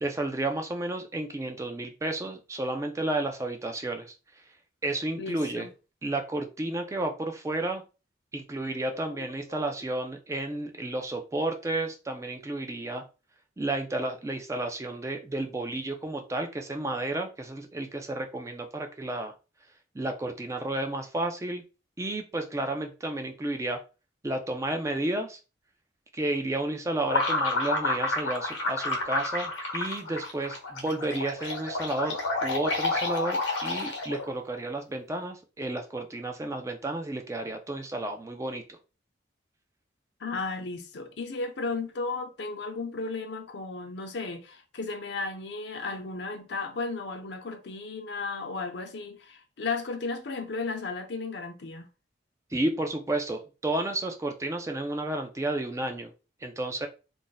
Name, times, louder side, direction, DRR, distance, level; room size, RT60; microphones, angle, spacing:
voice 1, 0.0-4.1 4.8-5.7 6.0-7.8 8.3-13.0 13.6-19.3 19.9-21.6 22.0-23.8 24.2-25.4 26.1-38.8 52.5-56.1 56.4-56.9, right 2 dB, 15° right, 0.3 m, -32 dB
voice 2, 5.2-5.7 8.9-9.7 40.2-51.9, left 3 dB, 65° left, 0.5 m, -35 dB
sound 1, 27.1-34.3, left 2 dB, 85° left, 0.9 m, -29 dB
2.5 x 2.1 x 3.8 m
head